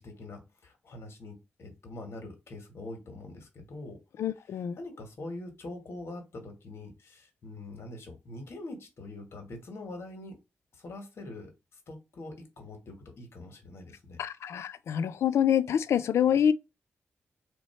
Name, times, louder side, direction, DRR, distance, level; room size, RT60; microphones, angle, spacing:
voice 1, 0.0-4.0 4.8-10.4 10.7-14.2 16.3-16.4, left 2 dB, 65° left, 1.6 m, -44 dB
voice 2, 4.2-4.8 14.2-16.5, left 9 dB, 85° left, 0.4 m, -26 dB
3.4 x 3.0 x 4.4 m
cardioid pair, 85°, 5 cm